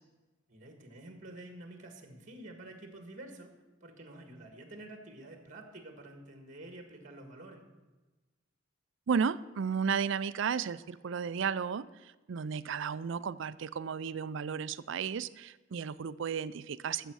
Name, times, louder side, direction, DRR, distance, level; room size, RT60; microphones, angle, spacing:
voice 1, 0.5-3.5 3.8-7.6, right 1 dB, 40° right, 5 dB, 1.7 m, -49 dB
voice 2, 9.1-11.9 12.3-17.1, right 6 dB, 65° right, 16 dB, 0.4 m, -33 dB
14.5 x 7.3 x 6.3 m, 1.2 s
head